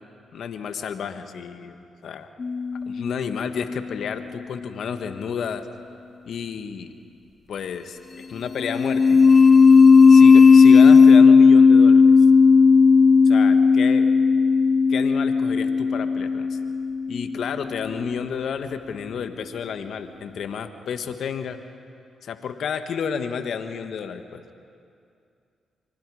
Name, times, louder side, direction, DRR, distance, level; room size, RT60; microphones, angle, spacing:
voice 1, 0.3-2.3 2.9-5.7 6.3-6.9 7.5-9.2 10.1-12.2 13.2-14.1 14.9-16.6 17.1-21.6 22.2-24.4, left 7 dB, 70° left, 8 dB, 1.5 m, -31 dB
sound 1, 2.4-3.2 8.6-17.4, left 5 dB, 45° left, 0.4 m, -14 dB
25.5 x 25.0 x 4.9 m, 2.5 s
supercardioid pair, 50°, 0 cm